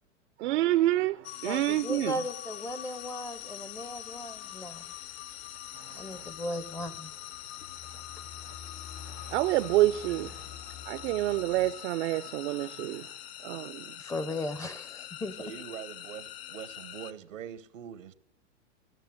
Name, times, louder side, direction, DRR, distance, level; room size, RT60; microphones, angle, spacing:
voice 1, 0.4-2.2 5.8-6.3 9.2-10.4 10.9-13.1 13.4-13.9, right 16 dB, 60° right, 0.5 m, -28 dB
sound 1, 1.2-17.1, left 12 dB, 55° left, 0.8 m, -44 dB
voice 2, 1.4-4.8 5.9-7.1 14.0-15.4, left 1 dB, 10° left, 0.5 m, -37 dB
sound 2, 3.7-11.7, left 7 dB, 90° left, 4.8 m, -50 dB
voice 3, 15.4-18.1, right 9 dB, 85° right, 1.0 m, -43 dB
14.0 x 6.7 x 7.5 m
hypercardioid pair, 120°, 37 cm